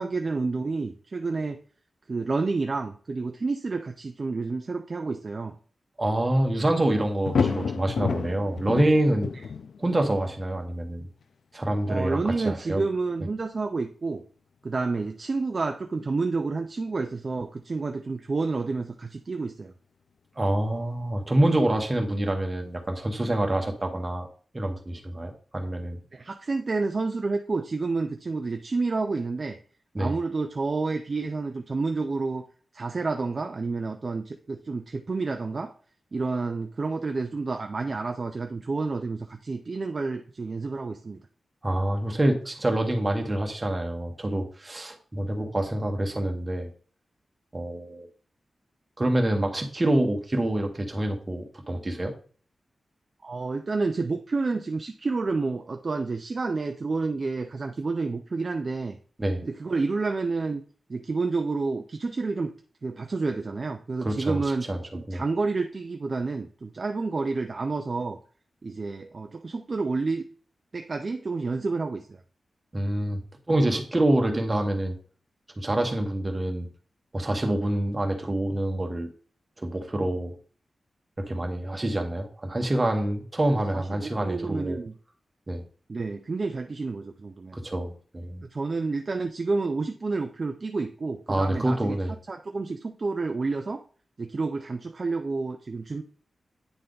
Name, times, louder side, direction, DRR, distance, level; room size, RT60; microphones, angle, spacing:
voice 1, 0.0-1.6 2.1-5.6 9.4-9.5 11.9-14.2 14.6-19.7 26.1-29.6 30.0-32.4 32.7-35.7 36.1-41.2 53.2-59.0 59.4-60.6 60.9-62.5 62.8-64.7 64.9-68.2 68.6-70.2 70.7-72.2 83.7-84.9 85.9-87.6 88.4-92.0 92.3-93.8 94.2-96.0, right 3 dB, 40° right, 5 dB, 0.4 m, -29 dB
voice 2, 6.0-9.3 9.8-11.1 11.5-12.8 20.4-24.3 24.5-26.0 29.9-30.2 41.6-46.7 47.5-48.1 49.0-52.1 59.2-59.4 64.0-64.4 64.7-64.8 65.1-65.2 72.7-73.2 73.5-75.0 75.6-76.7 77.1-79.1 79.6-80.3 81.2-84.8 85.5-85.6 87.5-88.4 91.3-92.1, right 1 dB, 20° right, 3 dB, 1.2 m, -26 dB
sound 1, 6.9-10.0 11.2-11.3 23.3-23.4, left 5 dB, 80° left, 0.4 m, -30 dB
9.0 x 3.4 x 3.8 m, 0.43 s
wide cardioid pair, 130°, 0 cm